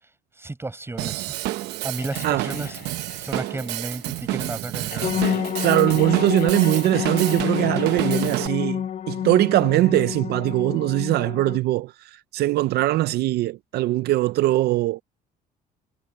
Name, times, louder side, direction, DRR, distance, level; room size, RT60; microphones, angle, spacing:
voice 1, 0.3-1.3 1.8-2.8 3.2-5.4, right 2 dB, 15° right, 6.5 m, -33 dB
Drum kit / Drum, 1.0-8.5, right 17 dB, 85° right, 0.9 m, -30 dB
sound 1, 1.9-8.6, left 13 dB, 70° left, 7.0 m, -43 dB
sound 2, 5.0-11.6, left 9 dB, 45° left, 0.9 m, -28 dB
voice 2, 5.6-15.0, right 16 dB, 70° right, 0.5 m, -21 dB
cardioid pair, 110°, 17 cm